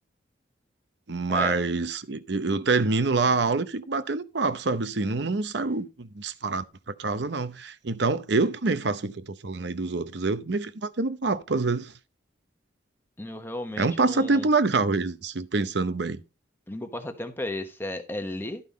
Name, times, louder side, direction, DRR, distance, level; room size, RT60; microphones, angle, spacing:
voice 1, 1.1-6.6 7.0-11.9 13.8-16.2, right 3 dB, 60° right, 0.8 m, -26 dB
voice 2, 13.2-14.5 16.7-18.6, left 1 dB, 10° left, 1.1 m, -34 dB
12.0 x 5.5 x 4.1 m
head